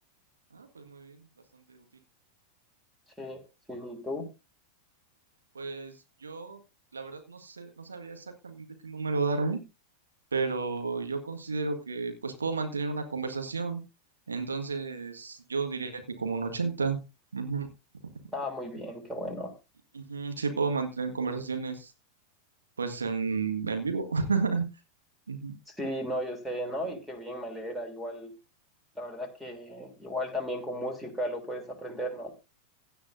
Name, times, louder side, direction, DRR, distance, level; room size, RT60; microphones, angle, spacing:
voice 1, 0.5-1.2 1.7-1.8 5.6-5.9 6.2-6.6 6.9-9.6 10.3-13.8 14.3-17.0 17.3-17.7 19.9-21.9 22.8-24.7 25.3-25.6, right 4 dB, 75° right, 5 dB, 1.7 m, -32 dB
voice 2, 3.7-4.3 18.3-19.5 25.7-28.3 28.9-32.3, equal, 5° right, 5 dB, 3.2 m, -35 dB
16.5 x 10.0 x 2.7 m, 0.27 s
figure-of-eight pair, 90°, 0 cm